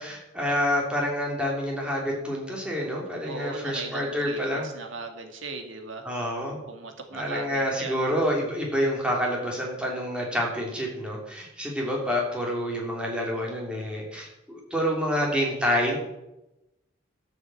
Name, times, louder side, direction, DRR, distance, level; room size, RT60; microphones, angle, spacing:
voice 1, 0.0-4.7 6.0-6.6 7.1-16.0, equal, 5° right, -2 dB, 3.1 m, -28 dB
voice 2, 3.3-6.1 6.7-8.0, right 3 dB, 85° right, 5 dB, 2.1 m, -38 dB
12.5 x 7.1 x 7.7 m, 0.94 s
head